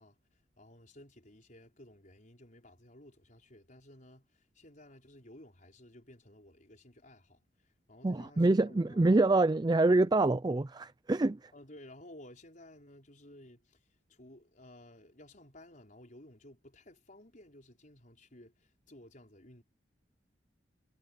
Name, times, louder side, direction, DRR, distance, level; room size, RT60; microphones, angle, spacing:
voice 1, 0.0-9.2 11.5-19.6, left 1 dB, 50° left, 5.3 m, -55 dB
voice 2, 8.0-11.5, right 2 dB, 25° right, 0.5 m, -26 dB
head